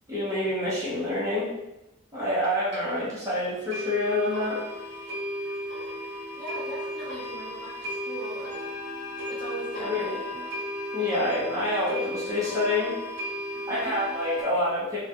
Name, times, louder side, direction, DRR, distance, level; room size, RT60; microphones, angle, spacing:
voice 1, 0.1-1.5 2.1-4.6 9.8-10.4 10.9-12.9 13.7-15.0, left 1 dB, 15° right, -9 dB, 0.7 m, -27 dB
sound 1, 2.4-2.5 2.7-2.8 3.2-3.3 3.7-14.4, equal, 55° right, 0.8 m, -35 dB
voice 2, 6.4-8.8 9.3-10.5 13.5-14.1, right 1 dB, 25° left, -7 dB, 0.7 m, -40 dB
2.2 x 2.2 x 2.8 m, 0.94 s
head